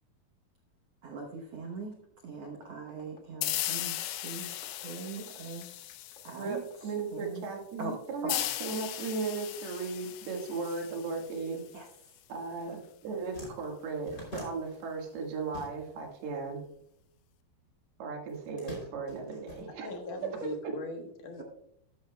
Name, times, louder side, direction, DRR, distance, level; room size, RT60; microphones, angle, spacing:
voice 1, 1.0-2.0 2.2-5.8 6.2-7.4 7.8-8.5 11.7-11.9, right 4 dB, 75° right, 1 dB, 1.4 m, -42 dB
sound 1, 2.3-7.9, left 4 dB, 40° left, 2.1 m, -56 dB
sound 2, 3.4-6.8 8.3-11.8, left 14 dB, 85° left, 2.7 m, -37 dB
voice 2, 6.4-11.6 12.3-16.6 18.0-19.9, right 4 dB, 90° right, 1 dB, 3.7 m, -36 dB
sound 3, 13.0-16.2 16.4-17.6 18.2-20.3, left 2 dB, 25° left, 3.2 m, -47 dB
voice 3, 19.6-21.4, left 2 dB, 65° left, 3 dB, 2.6 m, -41 dB
13.0 x 10.5 x 2.2 m, 0.75 s
omnidirectional pair, 4.4 m